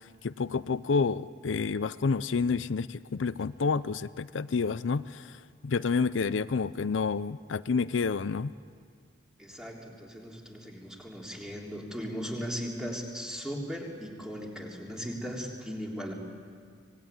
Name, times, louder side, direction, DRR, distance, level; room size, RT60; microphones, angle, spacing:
voice 1, 0.2-8.5, left 4 dB, 90° left, 15 dB, 0.5 m, -29 dB
voice 2, 9.4-16.1, equal, 5° right, -2 dB, 3.5 m, -38 dB
24.5 x 19.5 x 9.4 m, 2.1 s
head